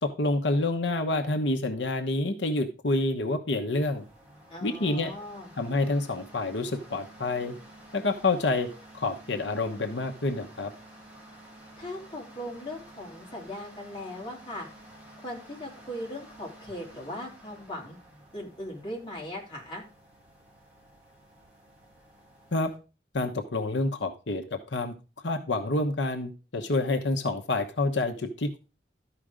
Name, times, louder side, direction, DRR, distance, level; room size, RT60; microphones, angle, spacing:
voice 1, 0.0-4.0 4.6-5.1 5.6-7.5 7.9-8.7 8.9-10.7 22.5-22.7 23.1-24.9 25.2-28.6, left 2 dB, 90° left, 4 dB, 1.0 m, -28 dB
sound 1, 3.8-22.8, right 1 dB, 10° right, 2.5 m, -51 dB
voice 2, 4.5-5.5 11.8-14.7 15.2-18.0 18.3-19.8, left 1 dB, 25° left, -3 dB, 3.1 m, -39 dB
12.5 x 5.0 x 5.0 m, 0.32 s
head